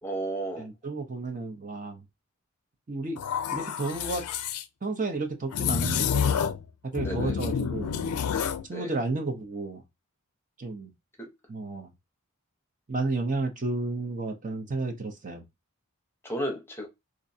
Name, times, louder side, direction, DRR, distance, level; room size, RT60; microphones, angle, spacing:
voice 1, 0.0-0.7 7.0-7.4 8.7-8.9 11.2-11.3 16.2-16.9, right 1 dB, 10° left, 0.8 m, -33 dB
voice 2, 0.6-2.0 2.9-3.2 3.5-4.2 4.8-6.5 6.8-7.9 8.7-9.8 10.6-10.9 11.5-11.9 12.9-15.4, right 3 dB, 35° right, 0.7 m, -32 dB
sound 1, 3.2-4.6 5.5-6.7 6.9-8.7, left 7 dB, 85° left, 0.4 m, -28 dB
4.4 x 2.5 x 2.6 m
head